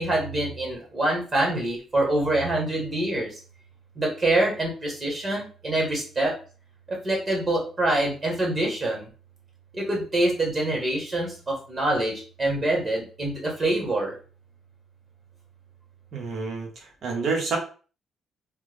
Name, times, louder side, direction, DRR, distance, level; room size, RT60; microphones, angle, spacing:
voice 1, 0.0-3.4 4.0-6.3 6.9-9.1 9.7-14.1, right 1 dB, 35° right, -1 dB, 1.3 m, -25 dB
voice 2, 16.1-17.6, right 4 dB, 65° right, 0 dB, 1.1 m, -28 dB
3.4 x 2.1 x 3.3 m, 0.38 s
cardioid pair, 90°, 0 cm